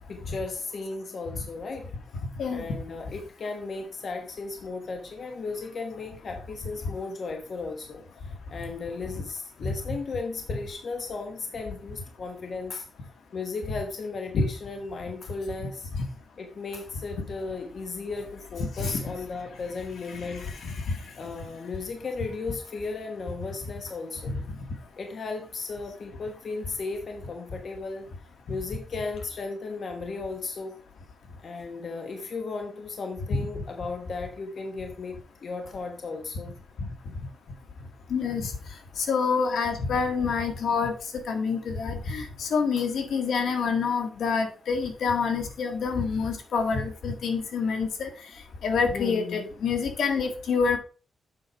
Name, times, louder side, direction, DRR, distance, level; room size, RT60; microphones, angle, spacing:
voice 1, 0.1-1.8 2.5-8.0 8.5-12.8 13.3-15.8 16.4-20.5 21.2-24.4 25.0-28.0 28.5-30.7 31.4-35.1 35.4-36.5 48.9-49.4, left 4 dB, 60° left, 4 dB, 1.3 m, -35 dB
voice 2, 20.1-21.0 24.2-24.3 36.8-36.9 38.1-38.5 39.0-40.9 41.3-48.1 48.6-50.8, left 5 dB, 85° left, 5 dB, 1.7 m, -27 dB
7.9 x 5.8 x 4.7 m, 0.37 s
cardioid pair, 100°, 0 cm